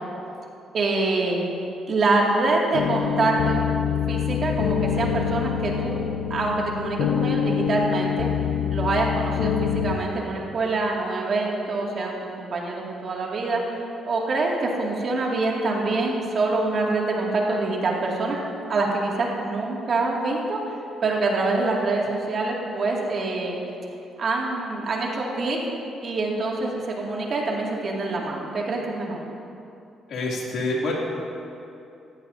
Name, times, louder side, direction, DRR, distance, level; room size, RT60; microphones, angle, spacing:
voice 1, 0.7-1.5 1.9-3.7 4.1-6.0 6.3-8.3 8.7-13.6 14.1-18.4 18.7-20.8 21.0-23.5 24.2-25.6 26.0-29.2, right 3 dB, 55° right, -2 dB, 2.3 m, -25 dB
sound 1, 2.7-10.0, left 8 dB, 90° left, 0.7 m, -25 dB
voice 2, 30.1-30.9, left 2 dB, 70° left, -3 dB, 2.8 m, -26 dB
16.5 x 14.5 x 2.8 m, 2.7 s
cardioid pair, 90°, 0 cm